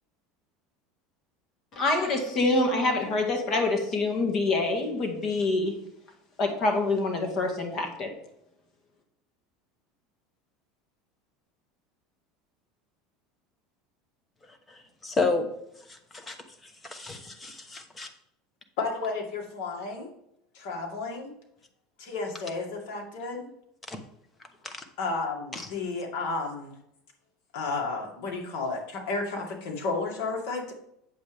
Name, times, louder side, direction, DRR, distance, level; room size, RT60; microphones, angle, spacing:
voice 1, 1.7-5.7 6.4-8.1, left 2 dB, 40° left, 3 dB, 1.8 m, -26 dB
voice 2, 15.0-15.5 16.1-16.4 16.8-18.1 23.9-24.0 24.6-24.8 25.5-25.7, left 3 dB, 15° left, 7 dB, 1.1 m, -30 dB
voice 3, 18.8-20.1 20.5-21.3 22.0-23.5 25.0-26.8 27.5-30.7, left 3 dB, 70° left, 1 dB, 2.2 m, -32 dB
8.2 x 7.4 x 3.4 m, 0.77 s
supercardioid pair, 130°, 0 cm